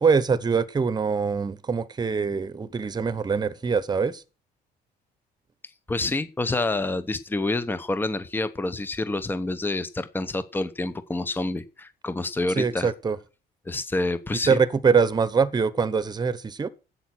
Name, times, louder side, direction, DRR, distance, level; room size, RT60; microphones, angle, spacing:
voice 1, 0.0-4.2 12.5-13.2 14.5-16.7, right 5 dB, 25° right, 1.1 m, -23 dB
voice 2, 5.9-12.9 13.7-14.6, left 2 dB, 10° left, 0.9 m, -28 dB
11.0 x 8.3 x 6.1 m
cardioid pair, 110°, 17 cm